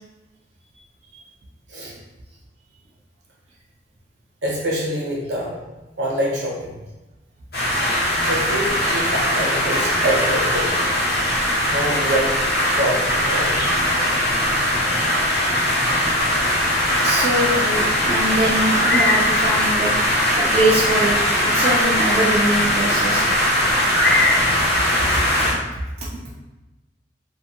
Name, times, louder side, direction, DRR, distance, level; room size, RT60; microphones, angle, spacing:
voice 1, 4.4-5.6 6.0-6.7 8.3-10.8 11.7-12.4 12.8-13.6, equal, 70° right, -4 dB, 0.8 m, -25 dB
sound 1, 7.5-25.5, left 1 dB, 60° left, 0.8 m, -20 dB
voice 2, 17.0-19.9 20.3-23.3 25.4-25.5 26.0-26.1, right 1 dB, 35° right, -5 dB, 0.3 m, -23 dB
2.5 x 2.2 x 2.8 m, 1.1 s
head